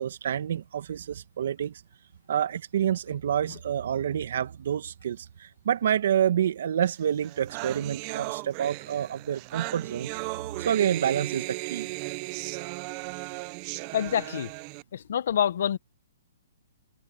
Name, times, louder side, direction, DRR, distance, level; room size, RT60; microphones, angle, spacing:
voice 1, 0.0-1.8 2.3-10.1 10.6-11.9, right 9 dB, 65° right, 1.7 m, -28 dB
sound 1, 7.0-7.1 7.2-14.8, right 28 dB, 35° right, 0.6 m, -36 dB
voice 2, 13.9-14.5 14.9-15.8, left 9 dB, 65° left, 1.2 m, -26 dB
hypercardioid pair, 145°, 0 cm